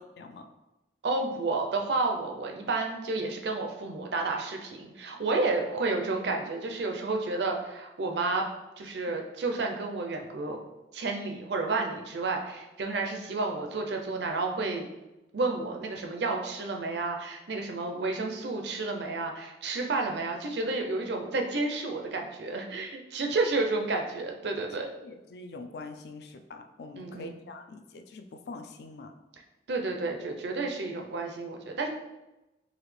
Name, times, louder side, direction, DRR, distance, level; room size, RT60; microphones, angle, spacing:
voice 1, 0.2-0.5 25.0-29.1, left 3 dB, 60° left, 7 dB, 0.4 m, -44 dB
voice 2, 1.0-8.5 8.8-10.6 10.9-14.9 15.3-24.9 27.0-27.4 29.7-31.9, right 3 dB, 70° right, 2 dB, 0.5 m, -31 dB
4.0 x 2.8 x 3.2 m, 1.0 s
head